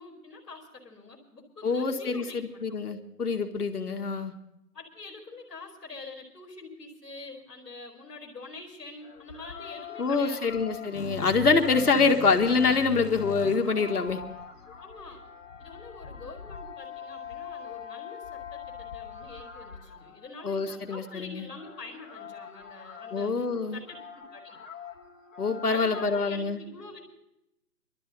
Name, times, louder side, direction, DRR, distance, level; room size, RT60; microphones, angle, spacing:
voice 1, 0.0-2.6 4.7-10.5 12.0-12.2 14.8-15.2 15.6-23.3 23.7-24.6 25.7-27.0, left 3 dB, ahead, -17 dB, 1.4 m, -45 dB
voice 2, 1.6-4.3 10.0-14.2 20.4-21.4 23.1-23.8 25.4-26.6, left 4 dB, 70° left, 4 dB, 1.8 m, -25 dB
sound 1, 9.0-26.3, left 7 dB, 50° left, 1.7 m, -44 dB
sound 2, 10.9-14.7, left 6 dB, 85° left, 1.3 m, -39 dB
21.5 x 12.5 x 4.0 m, 0.86 s
hypercardioid pair, 175°, 47 cm